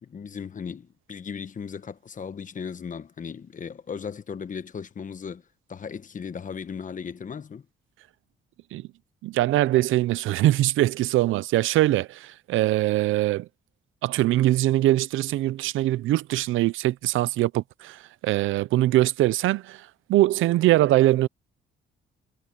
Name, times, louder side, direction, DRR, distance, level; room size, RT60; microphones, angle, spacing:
voice 1, 0.0-5.4 5.7-7.7, left 6 dB, 40° left, 1.2 m, -36 dB
voice 2, 9.2-13.5 14.0-21.3, right 15 dB, 85° right, 0.6 m, -22 dB
cardioid pair, 90°, 20 cm